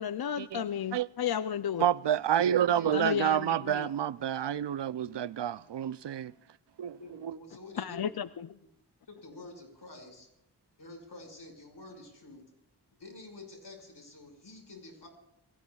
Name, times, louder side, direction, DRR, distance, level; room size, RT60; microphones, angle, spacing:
voice 1, 0.0-1.8 2.9-3.9 7.8-8.5, left 9 dB, 65° left, 0.5 m, -33 dB
voice 2, 1.8-6.3 6.8-7.4, right 10 dB, 85° right, 0.5 m, -29 dB
voice 3, 2.7-3.3 7.0-8.2 9.1-10.3 10.8-12.4 13.0-15.1, left 2 dB, 85° left, 5.6 m, -48 dB
28.0 x 20.0 x 2.4 m
wide cardioid pair, 60°, 41 cm